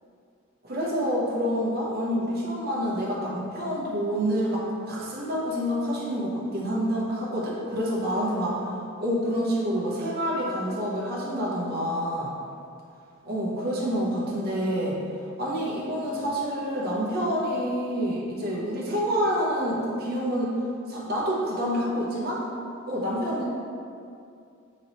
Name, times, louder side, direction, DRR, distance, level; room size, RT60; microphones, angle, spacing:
voice 1, 0.6-8.6 9.0-12.3 13.2-15.0 15.4-20.5 20.9-22.4 22.9-23.5, equal, 45° right, -6 dB, 0.7 m, -27 dB
4.0 x 3.0 x 2.9 m, 2.4 s
head